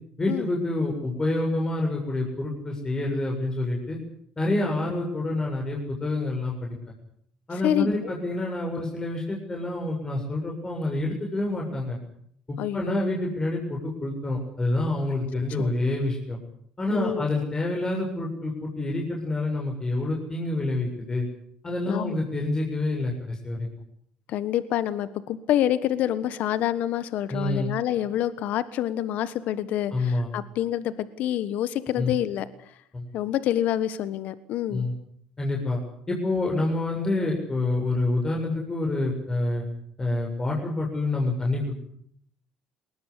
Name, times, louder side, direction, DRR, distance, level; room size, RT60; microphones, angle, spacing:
voice 1, 0.2-4.0 4.4-6.8 7.5-12.0 12.5-16.4 16.8-21.2 21.6-23.7 27.3-27.7 29.9-30.3 32.0-32.1 32.9-33.1 34.7-34.9 35.4-35.8 36.1-39.6 40.0-41.7, left 2 dB, 25° left, 0 dB, 7.5 m, -27 dB
voice 2, 7.6-8.1 12.6-13.1 15.6-15.7 16.9-17.2 21.9-22.1 24.3-32.8 33.1-34.9, left 11 dB, 70° left, 15 dB, 1.3 m, -27 dB
21.0 x 19.5 x 10.0 m, 0.67 s
supercardioid pair, 80°, 3 cm